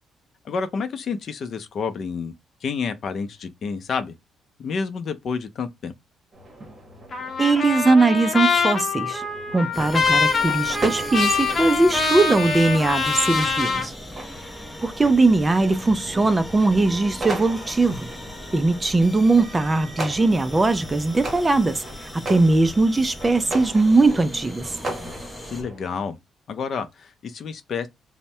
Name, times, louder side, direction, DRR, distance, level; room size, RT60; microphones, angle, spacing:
voice 1, 0.4-2.3 2.6-4.1 4.6-5.9 25.4-26.2 26.5-27.9, left 5 dB, 55° left, 0.5 m, -29 dB
sound 1, 6.3-26.0, right 1 dB, 40° right, 1.0 m, -38 dB
Trumpet, 7.1-13.9, left 4 dB, 35° left, 0.8 m, -24 dB
voice 2, 7.4-9.2 9.5-13.9 14.8-18.1 18.5-24.7, right 3 dB, 20° right, 0.4 m, -20 dB
Scary Horror suspense Ambiance, 9.7-25.6, left 1 dB, 5° left, 0.8 m, -38 dB
2.6 x 2.1 x 3.2 m
cardioid pair, 90°, 0 cm